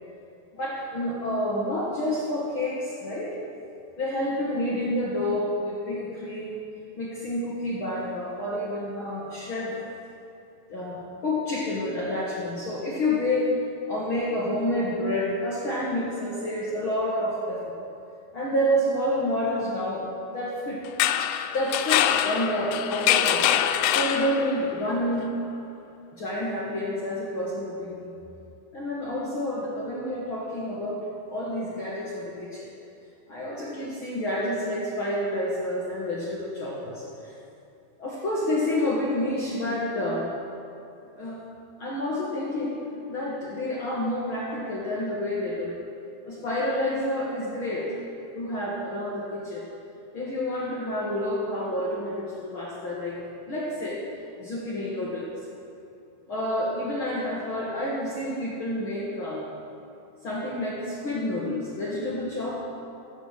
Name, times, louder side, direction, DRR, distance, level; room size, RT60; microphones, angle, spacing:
voice 1, 0.5-3.4 4.0-6.6 7.0-9.8 10.7-13.5 13.9-17.8 18.3-20.8 21.5-25.4 26.2-28.2 28.7-31.0 31.3-32.7 33.3-37.3 38.0-40.3 41.2-41.4 41.8-42.8 43.1-45.7 46.2-48.0 48.3-49.7 50.1-54.0 54.4-55.3 56.3-59.4 60.2-62.6, left 1 dB, 55° left, -5 dB, 1.5 m, -29 dB
sound 1, 20.9-24.7, left 11 dB, 80° left, 2.3 m, -24 dB
15.5 x 7.3 x 6.5 m, 2.6 s
omnidirectional pair, 4.4 m